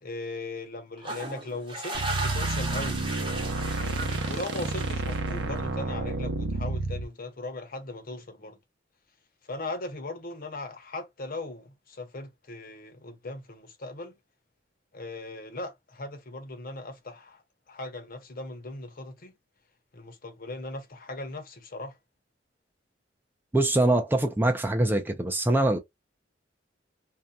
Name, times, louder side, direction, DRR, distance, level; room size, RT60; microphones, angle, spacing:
voice 1, 0.0-3.0 3.8-8.6 9.5-14.1 14.9-17.4 17.7-19.3 19.9-21.9, left 2 dB, 50° left, 0.8 m, -38 dB
sound 1, 1.0-5.5, right 2 dB, 25° right, 0.9 m, -35 dB
sound 2, 1.9-7.0, right 2 dB, 75° right, 0.7 m, -30 dB
voice 2, 23.5-25.8, right 2 dB, 10° right, 0.4 m, -23 dB
2.7 x 2.2 x 2.2 m
head